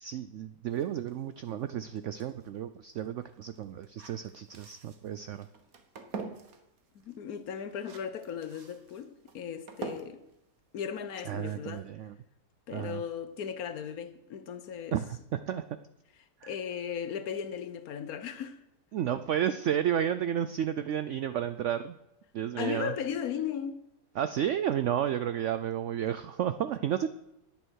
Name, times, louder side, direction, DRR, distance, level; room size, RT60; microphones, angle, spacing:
voice 1, 0.0-5.5 11.3-12.1 12.7-13.0 14.9-15.6 16.4-16.5 18.9-21.9 22.3-22.9 24.2-27.1, right 10 dB, 75° right, 0.6 m, -32 dB
sound 1, 0.7-11.5, right 4 dB, 60° right, 1.6 m, -47 dB
voice 2, 7.0-10.2 10.7-11.8 12.7-15.0 16.4-18.6 22.6-23.8, left 8 dB, 65° left, 1.2 m, -36 dB
10.5 x 8.7 x 6.3 m
omnidirectional pair, 1.8 m